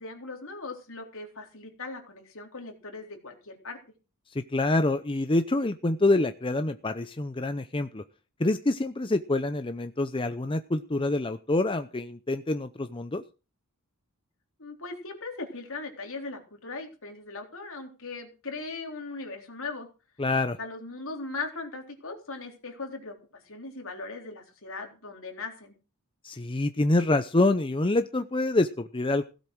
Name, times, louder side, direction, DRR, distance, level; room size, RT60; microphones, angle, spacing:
voice 1, 0.0-3.8 14.6-19.9 20.6-25.8, left 3 dB, 65° left, 3 dB, 3.8 m, -39 dB
voice 2, 4.5-8.0 8.4-13.2 20.2-20.6 26.2-29.2, left 2 dB, 25° left, 9 dB, 0.7 m, -26 dB
16.5 x 8.2 x 6.2 m, 0.34 s
head